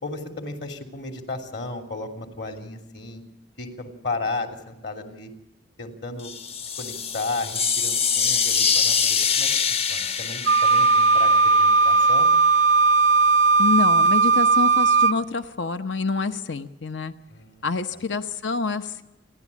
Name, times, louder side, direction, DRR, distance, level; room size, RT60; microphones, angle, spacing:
voice 1, 0.0-3.2 3.6-5.3 5.8-6.3 6.8-12.3 17.3-17.7 17.9-18.0, left 3 dB, 65° left, 4 dB, 3.1 m, -34 dB
sound 1, 6.2-12.1, left 6 dB, 35° left, 0.6 m, -24 dB
Wind instrument woodwind instrument, 10.5-15.2, right 4 dB, 80° right, 0.6 m, -17 dB
voice 2, 13.6-17.1 17.6-19.0, left 4 dB, 90° left, 10 dB, 1.0 m, -27 dB
29.0 x 11.0 x 8.4 m, 0.96 s
head